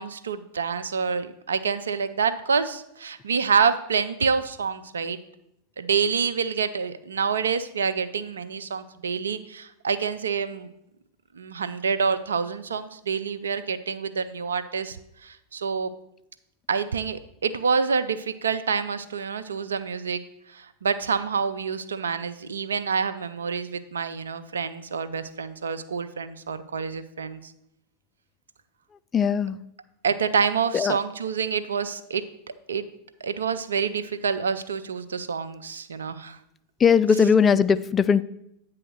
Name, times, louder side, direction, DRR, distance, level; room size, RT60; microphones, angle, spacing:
voice 1, 0.0-5.2 5.8-10.7 11.3-15.0 15.2-15.9 16.7-20.2 20.5-27.4 30.0-32.2 32.7-32.9 33.2-36.4, right 6 dB, 80° right, 11 dB, 0.4 m, -27 dB
voice 2, 29.1-29.6 30.7-31.0 36.8-38.2, left 6 dB, 25° left, 16 dB, 0.3 m, -19 dB
8.7 x 2.9 x 6.3 m, 0.79 s
hypercardioid pair, 90°, 0 cm